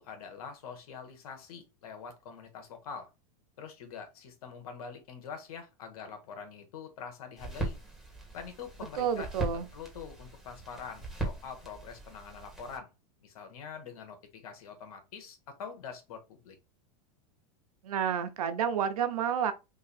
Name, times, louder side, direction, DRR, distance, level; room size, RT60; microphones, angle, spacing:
voice 1, 0.0-3.1 3.6-7.8 8.3-12.9 13.2-16.5, left 6 dB, 80° left, 1.4 m, -45 dB
sound 1, 7.4-12.8, right 2 dB, ahead, 1.7 m, -39 dB
voice 2, 9.0-9.7 17.8-19.5, right 8 dB, 90° right, 0.8 m, -30 dB
3.9 x 2.7 x 4.1 m
supercardioid pair, 135°, 18 cm